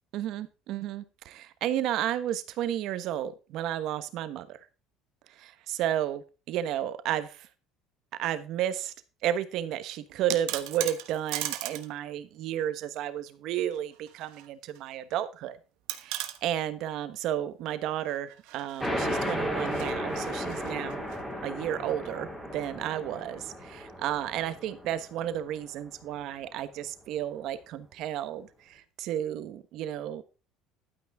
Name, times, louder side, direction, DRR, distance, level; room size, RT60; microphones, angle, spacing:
voice 1, 0.1-4.7 5.3-6.2 6.5-7.5 8.2-8.9 9.2-15.6 16.0-21.0 21.4-30.2, right 11 dB, 50° right, 12 dB, 1.1 m, -32 dB
sound 1, 10.1-11.9 12.2-12.3 13.7-14.5 14.8-14.9 15.9-16.4 18.3-21.2, right 15 dB, 70° right, 1.2 m, -37 dB
sound 2, 18.8-26.0, equal, 5° left, 3.0 m, -34 dB
11.5 x 9.4 x 3.6 m, 0.31 s
cardioid pair, 175°, 0 cm